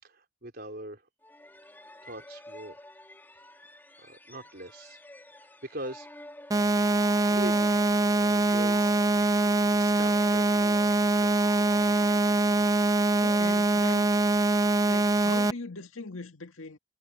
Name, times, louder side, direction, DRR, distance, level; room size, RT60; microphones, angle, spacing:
voice 1, 0.0-1.1 1.7-2.8 3.7-5.0 5.3-6.1 7.3-7.8 8.1-9.0 9.7-11.7, right 1 dB, 50° right, 4.2 m, -42 dB
sound 1, 1.2-14.7, left 1 dB, 10° left, 3.1 m, -50 dB
sound 2, 6.5-15.5, right 2 dB, 15° right, 0.4 m, -23 dB
voice 2, 13.2-14.1 14.9-16.8, left 3 dB, 80° left, 1.9 m, -40 dB
head